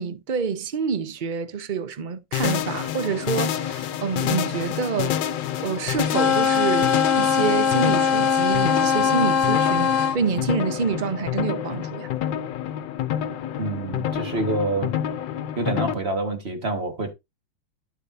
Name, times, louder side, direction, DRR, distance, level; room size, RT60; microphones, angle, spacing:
voice 1, 0.0-5.3 5.6-12.1, right 6 dB, 75° right, 0.4 m, -27 dB
sound 1, 2.3-15.9, left 10 dB, 75° left, 1.4 m, -28 dB
sound 2, 6.0-10.2, left 7 dB, 60° left, 1.5 m, -21 dB
voice 2, 13.6-15.0 15.6-17.1, right 2 dB, 35° right, 1.7 m, -27 dB
12.0 x 6.6 x 2.7 m
omnidirectional pair, 2.0 m